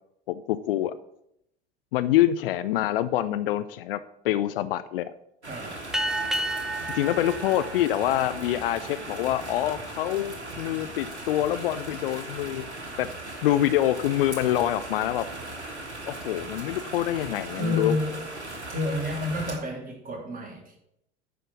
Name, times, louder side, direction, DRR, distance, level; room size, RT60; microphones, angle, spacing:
voice 1, 0.3-0.9 1.9-5.1 6.9-12.7 13.0-13.1 13.4-15.3 16.1-18.0, left 13 dB, 55° left, 14 dB, 0.5 m, -26 dB
sound 1, 5.4-19.6, right 2 dB, 85° right, 1.4 m, -38 dB
voice 2, 5.5-5.8 17.5-18.2 18.7-20.8, left 2 dB, 25° right, 0 dB, 3.1 m, -30 dB
sound 2, 5.9-8.9, right 1 dB, ahead, 0.8 m, -32 dB
9.2 x 5.8 x 6.1 m, 0.78 s
figure-of-eight pair, 75°, 33 cm